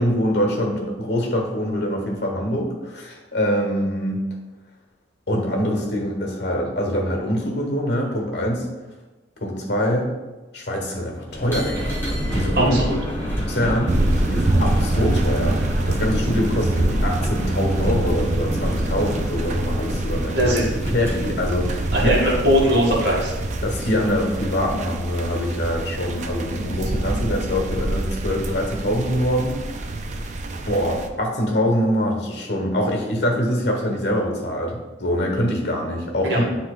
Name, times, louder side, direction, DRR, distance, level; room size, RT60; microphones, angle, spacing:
voice 1, 0.0-4.2 5.3-8.7 9.4-10.1 10.5-12.0 12.3-12.9 13.4-20.4 20.9-22.1 23.6-30.3 30.7-36.4, equal, 65° left, 1 dB, 1.4 m, -24 dB
sound 1, 11.3-25.7, equal, 10° left, 1.2 m, -30 dB
voice 2, 12.6-13.0 20.3-20.7 21.9-23.4 36.2-36.4, equal, 60° right, -3 dB, 1.8 m, -20 dB
sound 2, 13.9-31.1, right 1 dB, 40° right, 0.4 m, -25 dB
9.9 x 3.8 x 2.5 m, 1.2 s
head